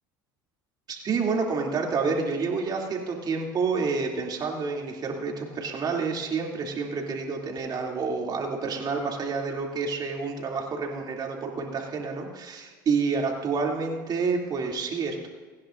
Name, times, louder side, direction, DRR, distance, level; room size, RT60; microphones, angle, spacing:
voice 1, 0.9-15.3, right 4 dB, 40° right, 0 dB, 2.8 m, -29 dB
29.5 x 10.5 x 2.6 m, 1.5 s
supercardioid pair, 85°, 10 cm